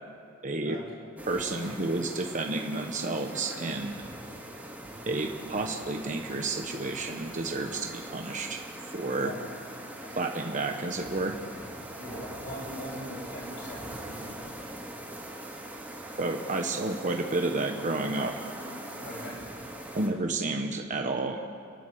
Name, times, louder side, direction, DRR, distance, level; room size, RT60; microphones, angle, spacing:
voice 1, 0.4-0.8 1.3-4.0 5.0-8.6 8.9-9.3 10.1-11.4 16.2-18.3 19.9-21.4, right 2 dB, 40° right, 3 dB, 1.1 m, -31 dB
sound 1, 1.2-20.1, right 1 dB, 10° right, 3.1 m, -42 dB
voice 2, 9.2-9.5 10.0-10.2 11.9-14.3 19.0-19.4, equal, 55° left, -3 dB, 6.6 m, -42 dB
30.0 x 11.0 x 7.9 m, 2.4 s
head